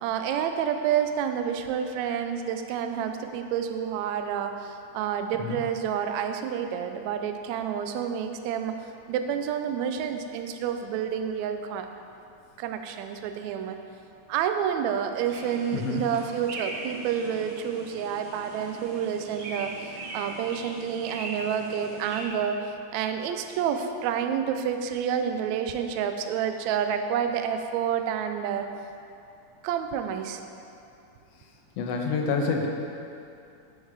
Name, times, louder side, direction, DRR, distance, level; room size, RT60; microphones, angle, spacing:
voice 1, 0.0-8.7 9.1-11.9 12.6-13.8 14.3-22.6 22.9-28.7 29.6-30.4, right 8 dB, 80° right, 7 dB, 1.7 m, -29 dB
sound 1, 15.3-22.3, right 2 dB, 55° right, 1.7 m, -40 dB
voice 2, 15.7-16.0 31.8-32.7, left 4 dB, 70° left, 1 dB, 1.6 m, -27 dB
9.1 x 6.4 x 4.8 m, 2.6 s
omnidirectional pair, 3.6 m